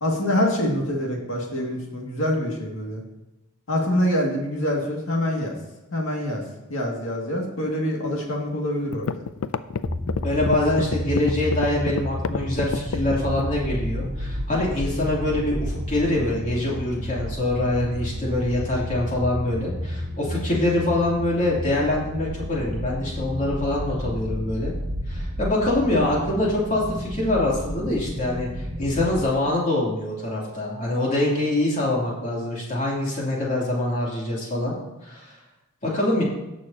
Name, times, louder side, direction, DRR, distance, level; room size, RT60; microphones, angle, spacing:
voice 1, 0.0-3.0 3.7-5.6 5.9-6.4 6.7-9.2, left 1 dB, 70° left, 0 dB, 2.2 m, -25 dB
sound 1, 8.5-8.6 8.9-13.6, left 6 dB, 90° left, 0.4 m, -28 dB
sound 2, 9.8-29.2, equal, 40° right, 1.5 m, -31 dB
voice 2, 10.2-24.7 25.1-34.7 35.0-35.3 35.8-36.2, left 1 dB, 35° left, -4 dB, 2.8 m, -24 dB
18.0 x 6.4 x 2.8 m, 0.99 s
head